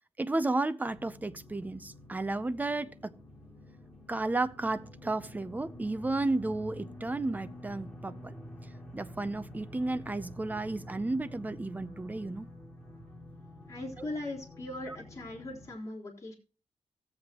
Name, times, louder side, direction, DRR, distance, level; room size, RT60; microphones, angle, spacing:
voice 1, 0.2-3.1 4.1-8.4 8.9-12.5 14.0-14.1, right 2 dB, 15° right, 0.6 m, -33 dB
sound 1, 0.8-15.7, equal, 10° left, 2.8 m, -48 dB
voice 2, 13.7-16.3, left 2 dB, 30° left, 3.7 m, -39 dB
17.5 x 7.8 x 2.9 m
wide cardioid pair, 165°, 11 cm